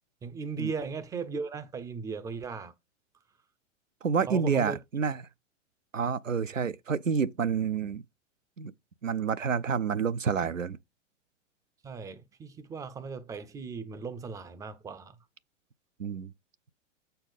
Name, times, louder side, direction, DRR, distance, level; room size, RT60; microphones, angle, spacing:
voice 1, 0.2-2.7 4.3-4.8 11.8-15.2, right 4 dB, 10° right, 0.4 m, -37 dB
voice 2, 4.0-5.2 5.9-8.0 8.6-8.7 9.0-10.8 16.0-16.3, right 6 dB, 90° right, 0.6 m, -28 dB
7.4 x 4.5 x 5.1 m
figure-of-eight pair, 100°, 37 cm